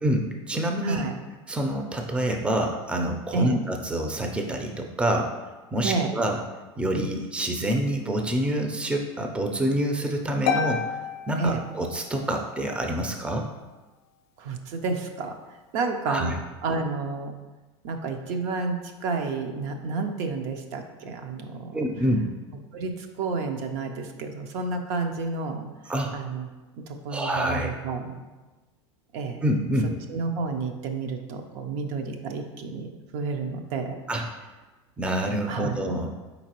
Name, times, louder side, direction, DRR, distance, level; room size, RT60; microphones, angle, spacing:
voice 1, 0.0-1.0 1.5-5.3 5.7-6.4 6.8-11.0 11.3-13.5 16.1-16.3 21.7-22.2 25.9-26.1 27.1-27.7 29.4-29.9 34.1-34.2 35.0-36.1, right 1 dB, 5° right, 3 dB, 0.5 m, -27 dB
voice 2, 0.8-1.2 3.3-3.6 5.8-6.1 11.4-11.6 14.4-15.3 15.7-16.4 16.6-17.3 17.8-21.8 22.7-25.6 26.1-26.5 26.9-28.2 29.1-29.4 30.1-34.0 35.5-35.8, right 4 dB, 60° right, 4 dB, 0.6 m, -30 dB
Harp, 10.5-12.3, left 6 dB, 65° left, 0.5 m, -30 dB
4.4 x 4.0 x 2.9 m, 1.2 s
hypercardioid pair, 100°, 15 cm